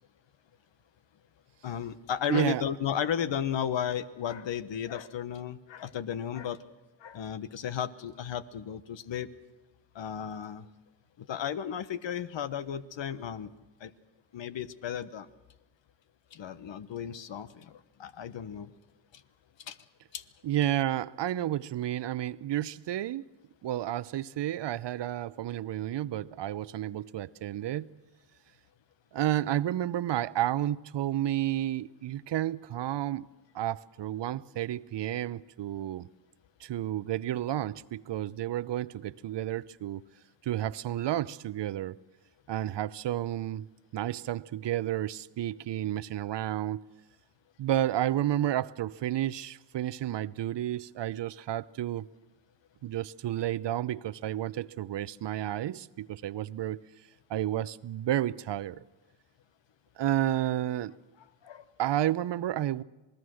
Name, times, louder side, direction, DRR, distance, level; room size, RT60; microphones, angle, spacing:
voice 1, 1.6-6.6 7.0-9.3 9.9-10.7 11.2-13.5 13.8-13.9 14.3-15.3 16.3-18.7 19.1-19.2 19.6-19.8 20.1-20.2 61.4-61.7 62.0-62.1, left 8 dB, 60° left, 1.3 m, -34 dB
voice 2, 2.3-2.6 20.4-23.2 23.6-27.9 29.1-33.3 33.5-36.1 36.6-40.0 40.4-42.0 42.5-46.8 47.6-52.1 52.8-56.8 57.3-58.8 60.0-61.0 61.8-62.8, right 12 dB, 60° right, 0.8 m, -31 dB
27.0 x 19.0 x 6.4 m
supercardioid pair, 55°, 49 cm